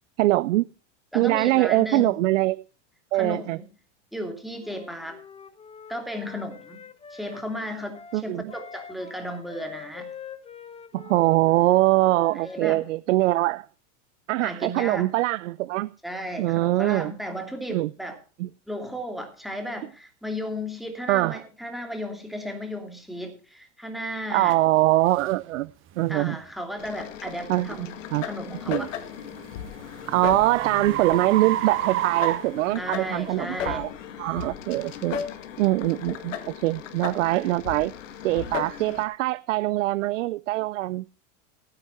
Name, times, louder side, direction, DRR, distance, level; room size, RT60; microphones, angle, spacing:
voice 1, 0.2-0.7 1.1-2.6 3.1-3.6 8.1-8.4 10.9-13.7 14.3-15.9 16.4-17.1 17.7-17.9 18.4-18.5 21.1-21.4 24.3-25.7 26.0-26.4 27.5-28.3 28.7-28.9 30.1-33.9 34.2-35.2 35.6-37.9 38.2-41.1, right 18 dB, 85° right, 0.6 m, -23 dB
voice 2, 1.1-2.1 3.1-3.7 4.1-5.2 5.9-10.1 12.4-12.8 14.4-15.1 16.0-18.2 18.7-24.6 26.1-28.9 32.8-33.9, equal, ahead, 2.8 m, -34 dB
Wind instrument woodwind instrument, 4.6-12.6, left 7 dB, 15° left, 1.2 m, -45 dB
sound 1, 24.5-24.6 25.2-25.4 26.0-26.2 28.8-33.3, right 14 dB, 35° right, 1.2 m, -30 dB
sound 2, 26.8-39.0, left 9 dB, 85° left, 2.0 m, -36 dB
16.5 x 9.5 x 4.3 m
supercardioid pair, 130°, 36 cm